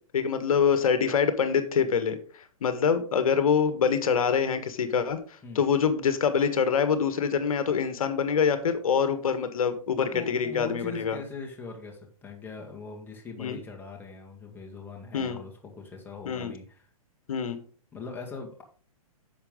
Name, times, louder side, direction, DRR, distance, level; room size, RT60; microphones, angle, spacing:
voice 1, 0.1-2.2 2.6-5.2 5.5-11.2 13.4-13.6 15.1-15.4 16.2-16.5 17.3-17.6, left 6 dB, 70° left, 9 dB, 1.5 m, -25 dB
voice 2, 10.1-16.8 17.9-18.6, left 4 dB, 10° left, 0 dB, 1.8 m, -41 dB
10.5 x 7.1 x 3.8 m, 0.42 s
hypercardioid pair, 145°, 19 cm